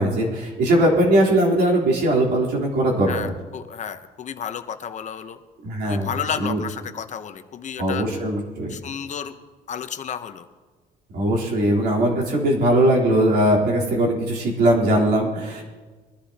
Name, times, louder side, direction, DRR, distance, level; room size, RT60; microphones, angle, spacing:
voice 1, 0.0-3.3 5.6-6.1 6.4-6.6 7.8-8.8 11.1-15.6, right 1 dB, 70° right, -3 dB, 3.7 m, -20 dB
voice 2, 3.1-5.4 5.9-8.1 8.7-9.3 9.7-10.5, left 8 dB, 45° left, 9 dB, 0.8 m, -32 dB
22.5 x 11.5 x 2.9 m, 1.4 s
cardioid pair, 110°, 17 cm